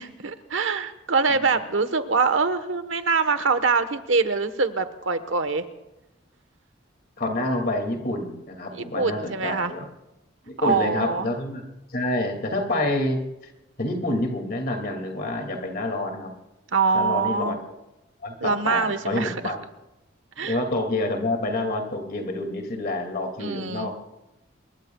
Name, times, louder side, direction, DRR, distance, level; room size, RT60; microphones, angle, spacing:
voice 1, 0.0-5.6 8.7-9.7 10.6-11.3 16.7-17.6 18.4-19.5 20.4-20.6 23.4-23.9, right 4 dB, 80° right, 10 dB, 1.3 m, -24 dB
voice 2, 7.2-9.8 10.4-11.6 11.9-13.2 13.8-16.3 16.9-17.6 18.2-19.6 20.4-23.9, left 2 dB, 50° left, 3 dB, 2.5 m, -27 dB
27.5 x 22.0 x 2.4 m, 0.96 s
head